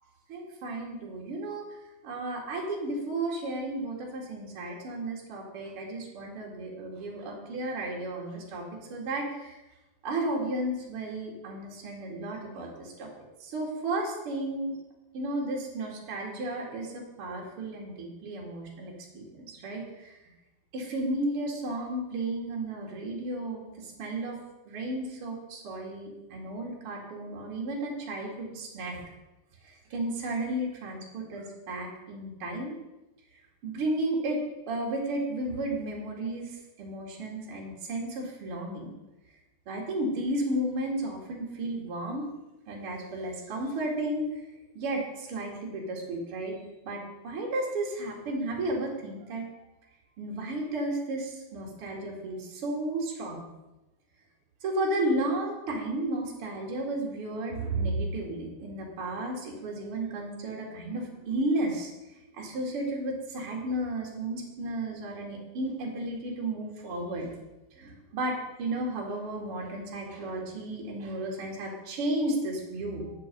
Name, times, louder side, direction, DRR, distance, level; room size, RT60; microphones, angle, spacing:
voice 1, 0.3-1.6 2.0-8.6 8.9-9.6 10.0-13.1 13.4-14.8 15.1-20.1 20.7-24.4 24.7-29.0 29.6-32.7 33.6-34.4 34.7-38.9 39.7-42.3 42.7-44.2 44.7-49.5 50.2-53.4 54.6-61.9 62.3-67.3 67.7-73.1, right 1 dB, 45° right, -2 dB, 2.0 m, -33 dB
8.5 x 6.8 x 7.8 m, 1.0 s
omnidirectional pair, 5.7 m